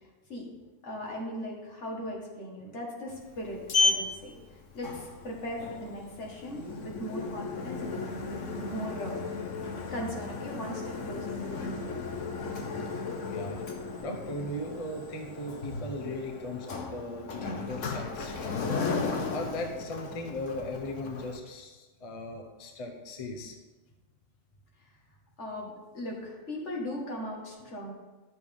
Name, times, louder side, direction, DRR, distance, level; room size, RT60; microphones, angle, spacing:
voice 1, 0.8-9.2 9.9-12.2 25.4-27.9, equal, 70° left, -2 dB, 2.1 m, -38 dB
Sliding door, 3.1-21.4, left 3 dB, 85° left, 1.3 m, -35 dB
voice 2, 12.9-13.6 14.0-18.8 19.3-23.6, left 1 dB, 30° left, 3 dB, 0.9 m, -38 dB
11.5 x 6.8 x 3.6 m, 1.2 s
omnidirectional pair, 1.3 m